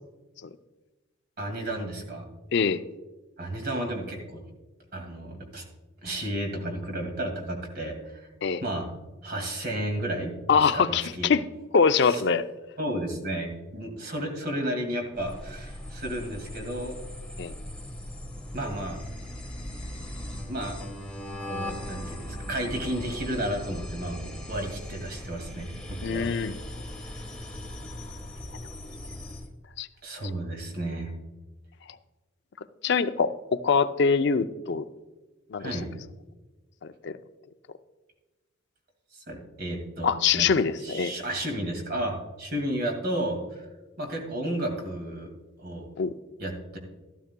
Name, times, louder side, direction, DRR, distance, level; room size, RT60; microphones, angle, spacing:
voice 1, 1.4-2.3 3.4-4.4 4.9-5.7 6.0-8.3 8.6-8.9 9.2-11.3 12.0-12.2 12.8-16.9 18.5-19.0 20.5-20.8 21.4-26.3 27.1-27.2 30.0-31.1 35.6-35.9 39.3-40.5 40.8-43.7 44.0-45.3 45.6-45.9 46.4-46.8, right 1 dB, 50° right, 3 dB, 2.1 m, -32 dB
voice 2, 2.5-2.8 8.4-8.6 10.5-11.4 11.7-12.5 17.4-17.5 26.0-26.5 29.8-29.9 32.8-34.8 35.5-35.7 36.8-37.2 40.0-41.1 46.0-46.1, left 5 dB, 60° left, 11 dB, 0.5 m, -24 dB
sound 1, 15.1-29.5, left 1 dB, 5° left, 1.2 m, -39 dB
13.0 x 12.0 x 2.2 m, 1.2 s
head